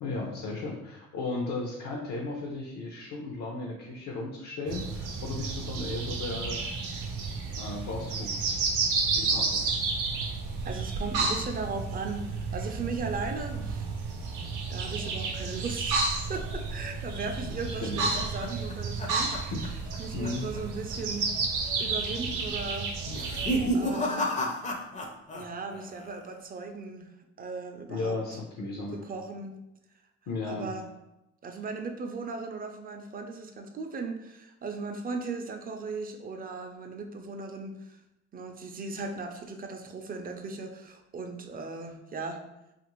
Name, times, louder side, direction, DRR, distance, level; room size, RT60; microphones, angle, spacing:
voice 1, 0.0-6.6 7.6-8.6 9.1-9.7 17.8-18.0 19.5-19.6 20.1-20.5 27.9-29.0 30.3-30.7, left 3 dB, 70° left, -1 dB, 0.6 m, -35 dB
sound 1, 4.7-23.7, right 4 dB, 85° right, 0.6 m, -31 dB
voice 2, 10.6-13.9 14.7-16.0 16.3-19.4 20.0-21.3 21.8-22.9 23.7-24.4 25.3-27.1 27.4-28.2 28.9-29.5 30.4-30.9 31.4-38.0 38.3-42.4, right 4 dB, 30° right, 5 dB, 0.4 m, -37 dB
sound 2, 17.7-20.0 20.2-20.6 20.9-21.0 21.8-22.2 23.0-25.5 25.7-26.3, equal, 25° left, 0.4 m, -32 dB
2.8 x 2.5 x 3.0 m, 0.91 s
cardioid pair, 90°, 30 cm